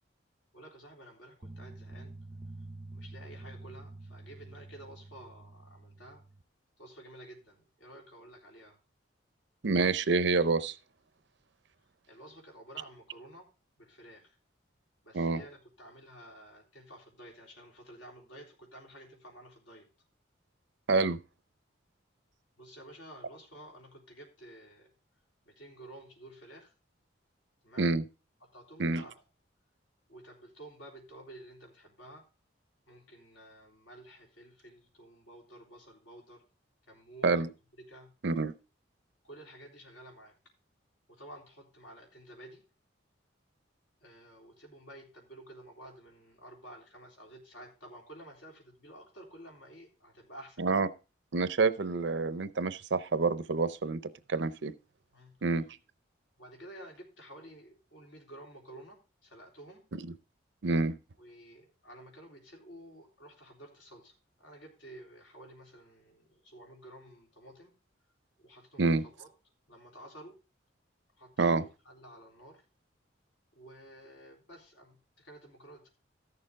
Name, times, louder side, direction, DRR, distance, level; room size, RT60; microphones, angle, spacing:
voice 1, 0.5-2.1 2.9-6.2 6.8-8.8 12.1-13.4 13.8-14.4 15.0-19.9 22.6-24.9 25.5-26.7 27.6-27.9 28.5-29.2 30.1-32.3 32.9-36.4 36.9-37.5 37.9-38.1 39.2-40.3 41.1-42.6 44.0-50.8 55.1-55.4 56.4-59.8 61.2-64.1 64.4-67.7 68.4-69.3 69.7-70.4 71.2-72.6 73.5-75.9, right 1 dB, 70° left, 3.5 m, -52 dB
sound 1, 1.4-6.4, right 2 dB, 15° right, 0.5 m, -47 dB
voice 2, 9.6-10.8 15.1-15.4 20.9-21.2 27.8-28.0 28.8-29.0 37.2-37.5 38.2-38.5 50.6-50.9 51.3-54.0 54.3-54.7 55.4-55.6 59.9-60.0 60.6-61.0 68.8-69.0 71.4-71.6, right 3 dB, 65° right, 0.6 m, -27 dB
14.0 x 6.8 x 3.6 m
head